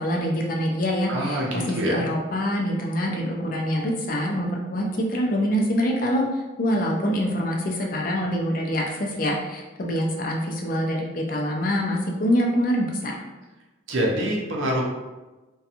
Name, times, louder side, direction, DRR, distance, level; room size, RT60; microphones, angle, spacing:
voice 1, 0.0-6.2 6.6-13.2, equal, 45° left, 0 dB, 0.4 m, -25 dB
voice 2, 1.1-2.0 13.9-14.8, equal, 80° right, -1 dB, 0.6 m, -25 dB
2.5 x 2.2 x 2.8 m, 1.1 s
head